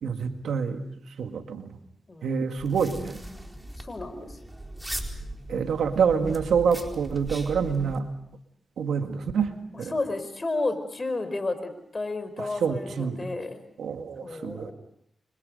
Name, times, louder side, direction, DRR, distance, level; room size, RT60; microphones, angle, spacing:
voice 1, 0.0-1.7 2.2-3.2 5.5-8.1 8.8-9.9 12.4-13.2 13.8-14.7, right 6 dB, 90° right, 6 dB, 2.0 m, -27 dB
voice 2, 2.1-2.4 3.8-4.4 9.7-13.6 14.2-14.7, left 2 dB, 35° left, 10 dB, 4.9 m, -32 dB
sound 1, 2.6-8.0, right 1 dB, 10° right, 4.3 m, -39 dB
30.0 x 25.0 x 5.4 m, 0.72 s
cardioid pair, 60°, 0 cm